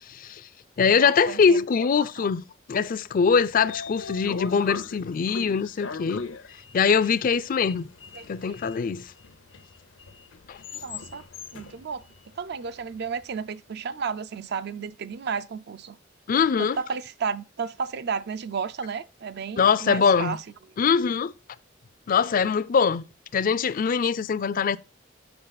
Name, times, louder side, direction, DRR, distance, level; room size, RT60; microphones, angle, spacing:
voice 1, 0.1-0.4 0.8-6.2 6.7-7.9 8.3-9.1 10.5-10.6 16.3-16.8 19.6-20.4 20.8-21.3 22.1-23.1 23.3-24.8, left 6 dB, 45° left, 0.4 m, -22 dB
voice 2, 1.0-1.6 2.0-2.3 8.1-8.6 10.8-11.2 11.5-12.0 12.4-16.0 16.6-20.4, right 5 dB, 60° right, 0.5 m, -33 dB
Sliding door, 3.1-13.2, left 4 dB, 80° left, 0.7 m, -40 dB
6.7 x 6.1 x 4.0 m
head